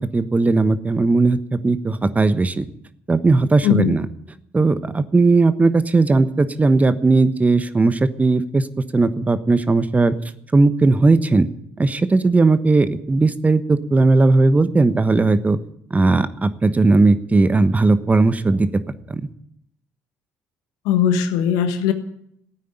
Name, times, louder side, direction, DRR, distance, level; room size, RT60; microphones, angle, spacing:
voice 1, 0.1-2.6 3.1-4.1 4.5-8.6 8.9-10.1 10.5-11.5 11.8-15.6 15.9-18.7 19.1-19.2, right 3 dB, 25° right, 12 dB, 1.2 m, -17 dB
voice 2, 3.6-4.0 20.8-21.9, left 9 dB, 75° left, 9 dB, 1.4 m, -19 dB
15.5 x 9.2 x 9.3 m, 0.71 s
hypercardioid pair, 55°, 6 cm